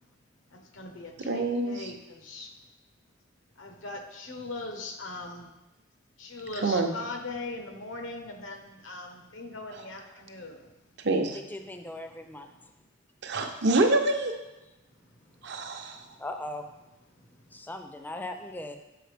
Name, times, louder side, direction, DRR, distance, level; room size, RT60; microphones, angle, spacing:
voice 1, 0.5-2.5 3.6-5.5 6.2-10.7, left 2 dB, 85° left, 5 dB, 0.9 m, -40 dB
voice 2, 1.2-1.8 6.6-6.9 11.0-11.4 13.2-14.3 15.4-16.0, right 2 dB, 60° right, 4 dB, 0.6 m, -26 dB
voice 3, 11.3-12.5 16.2-16.6 17.5-18.8, left 1 dB, 10° left, 6 dB, 0.4 m, -38 dB
7.7 x 4.7 x 3.4 m, 0.99 s
head